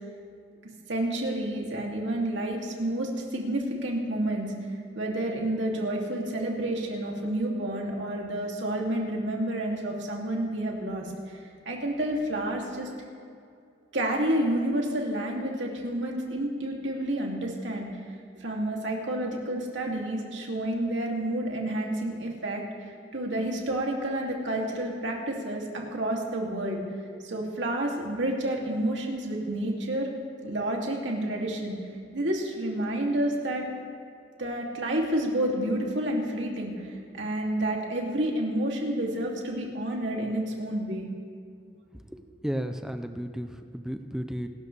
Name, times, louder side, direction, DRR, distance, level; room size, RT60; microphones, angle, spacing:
voice 1, 0.9-4.5 4.9-11.4 11.7-12.9 13.9-17.9 18.4-26.8 27.2-30.1 30.4-31.8 32.1-33.6 34.4-41.1, right 1 dB, 70° right, -1 dB, 2.7 m, -29 dB
voice 2, 42.1-44.5, equal, 5° right, 7 dB, 0.6 m, -34 dB
27.0 x 13.5 x 3.4 m, 2.3 s
head